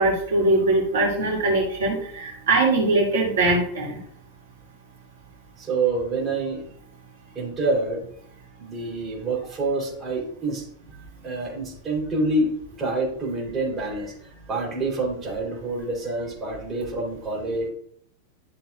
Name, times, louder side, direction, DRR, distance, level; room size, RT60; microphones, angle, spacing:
voice 1, 0.0-4.0, right 2 dB, 65° right, -3 dB, 2.5 m, -21 dB
voice 2, 5.6-6.6 7.3-8.1 8.6-11.0 11.2-17.7, right 2 dB, 20° right, -3 dB, 3.8 m, -27 dB
11.5 x 6.7 x 2.5 m, 0.64 s
figure-of-eight pair, 90°, 0 cm